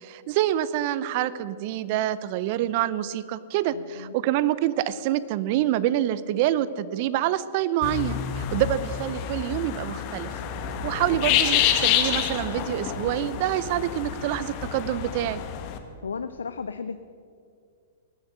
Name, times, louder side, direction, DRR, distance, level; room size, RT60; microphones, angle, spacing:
voice 1, 0.0-10.3 10.8-15.4, right 12 dB, 50° right, 17 dB, 0.6 m, -26 dB
voice 2, 3.7-4.1 8.5-8.7 16.0-17.0, left 5 dB, 85° left, 11 dB, 0.4 m, -35 dB
sound 1, 7.8-15.8, left 10 dB, 45° left, 1.2 m, -28 dB
19.0 x 7.2 x 6.6 m, 2.3 s
hypercardioid pair, 115°, 0 cm